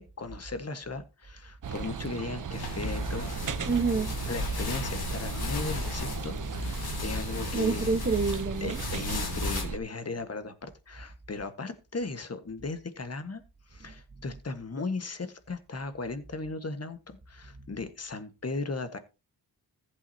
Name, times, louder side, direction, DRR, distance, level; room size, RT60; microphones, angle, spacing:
voice 1, 0.0-3.3 4.2-8.0 8.6-13.4 13.7-19.0, left 3 dB, 40° left, 1.5 m, -37 dB
sound 1, 1.6-9.8, right 7 dB, 50° right, 0.9 m, -37 dB
sound 2, 2.5-9.6, left 3 dB, 65° left, 3.2 m, -34 dB
voice 2, 3.7-4.1 7.5-8.8, right 4 dB, 30° right, 1.2 m, -27 dB
15.0 x 8.4 x 2.8 m
cardioid pair, 85°, 40 cm